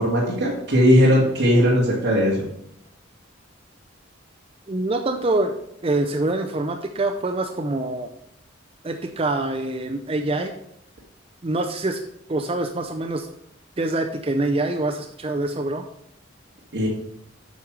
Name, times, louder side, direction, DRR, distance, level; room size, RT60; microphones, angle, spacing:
voice 1, 0.0-2.5 16.7-16.9, equal, 55° right, -5 dB, 1.9 m, -18 dB
voice 2, 4.7-8.1 8.8-10.5 11.4-12.0 12.3-13.3 13.8-15.8, right 2 dB, 30° right, 4 dB, 0.5 m, -25 dB
8.3 x 4.7 x 6.1 m, 0.74 s
head